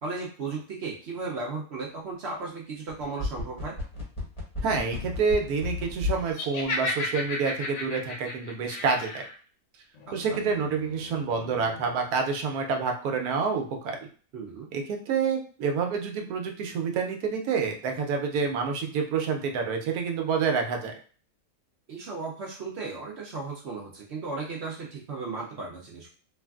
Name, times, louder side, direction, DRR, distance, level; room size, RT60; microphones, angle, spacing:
voice 1, 0.0-3.8 10.1-10.4 14.3-14.7 21.9-26.1, right 3 dB, 60° right, -3 dB, 0.7 m, -35 dB
sound 1, 2.9-6.3 6.6-6.7, left 3 dB, 30° left, 0.7 m, -32 dB
voice 2, 4.6-9.2 10.1-14.0 14.7-20.9, right 5 dB, 85° right, 3 dB, 1.1 m, -28 dB
Laughter, 6.3-9.3, left 2 dB, 85° left, 1.2 m, -33 dB
sound 2, 9.9-12.2, left 5 dB, 70° left, 1.0 m, -44 dB
3.1 x 2.4 x 2.3 m, 0.41 s
omnidirectional pair, 1.6 m